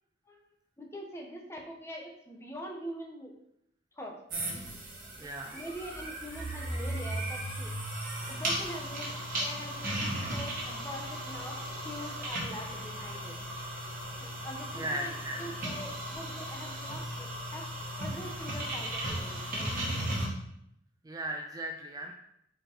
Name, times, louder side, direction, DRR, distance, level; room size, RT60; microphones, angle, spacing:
voice 1, 0.8-3.3 4.0-4.2 5.5-7.7 8.3-9.1 9.4-11.6 11.8-13.3 14.2-15.1 15.4-17.7 18.0-19.7, equal, 15° left, 0 dB, 1.0 m, -43 dB
sound 1, 4.3-20.3, right 1 dB, 50° right, 2.0 m, -36 dB
voice 2, 5.2-5.6 14.7-15.4 21.0-22.1, right 1 dB, 20° right, 3 dB, 0.4 m, -37 dB
5.1 x 4.5 x 4.4 m, 0.77 s
head